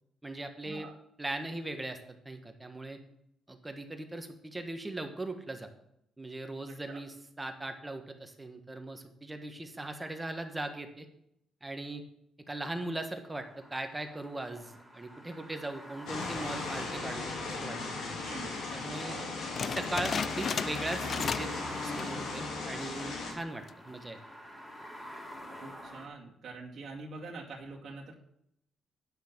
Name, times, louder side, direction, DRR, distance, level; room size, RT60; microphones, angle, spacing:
voice 1, 0.2-0.9 1.2-3.0 3.5-5.7 6.2-11.1 11.6-12.0 12.5-17.3 17.6-17.8 18.7-19.2 19.6-21.5 21.8-24.2, right 2 dB, 15° right, 6 dB, 1.3 m, -39 dB
voice 2, 6.7-7.0 18.2-18.5 18.8-19.3 25.6-28.1, right 3 dB, 55° right, -3 dB, 2.2 m, -45 dB
sound 1, 13.3-26.1, equal, 5° left, 3.9 m, -48 dB
sound 2, 16.1-23.3, left 3 dB, 80° left, 3.5 m, -37 dB
sound 3, 19.6-21.6 21.9-22.2 22.7-22.8 23.5-23.9, left 6 dB, 45° left, 0.3 m, -35 dB
9.5 x 5.7 x 7.4 m, 0.74 s
cardioid pair, 90°, 0 cm